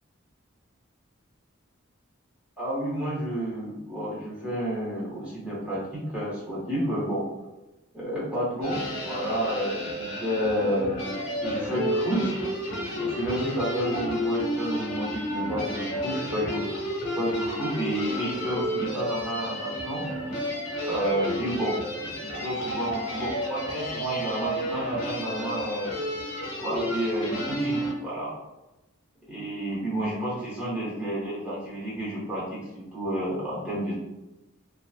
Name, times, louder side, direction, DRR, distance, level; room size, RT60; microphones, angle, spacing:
voice 1, 2.6-7.2 7.9-10.9 11.4-12.3 12.8-16.9 17.1-20.0 20.8-25.9 26.6-28.3 29.3-32.6 32.9-33.9, right 1 dB, 5° right, -8 dB, 0.9 m, -30 dB
Experimental guitar Improvisation in loop machine (lo-fi), 8.6-27.9, equal, 70° left, 0.8 m, -31 dB
2.8 x 2.2 x 2.3 m, 1.0 s
head